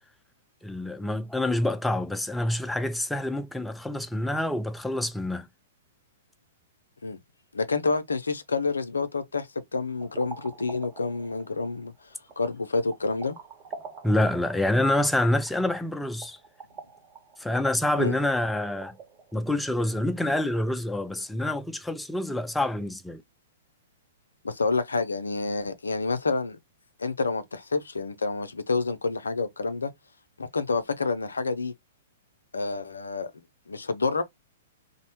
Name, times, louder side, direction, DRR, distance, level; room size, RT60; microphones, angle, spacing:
voice 1, 0.6-5.5 14.0-16.4 17.4-19.0 19.3-23.2, left 1 dB, 5° left, 0.4 m, -27 dB
voice 2, 7.5-9.5 9.7-11.9 12.4-13.4 18.0-18.2 24.4-26.6 27.0-29.9 30.4-31.7 32.5-33.3 33.7-34.2, left 3 dB, 85° left, 0.4 m, -28 dB
sound 1, 9.9-19.4, right 4 dB, 35° right, 1.0 m, -46 dB
2.5 x 2.1 x 2.9 m
hypercardioid pair, 115°, 0 cm